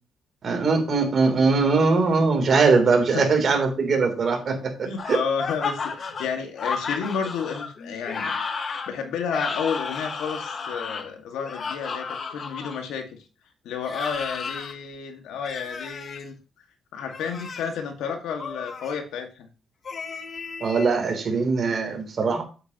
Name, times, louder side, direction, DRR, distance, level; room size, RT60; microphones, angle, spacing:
voice 1, 0.4-5.2 20.6-22.4, right 4 dB, 50° right, 3 dB, 3.3 m, -21 dB
voice 2, 4.8-8.4 8.9-13.2 13.6-16.4 16.9-19.5, left 6 dB, 85° left, 4 dB, 1.9 m, -31 dB
sound 1, 5.0-12.8 13.8-14.7 15.4-16.2 17.0-17.7 18.4-18.9 19.8-21.0, left 5 dB, 45° left, 1.2 m, -33 dB
8.1 x 8.1 x 3.0 m, 0.34 s
cardioid pair, 90°, 0 cm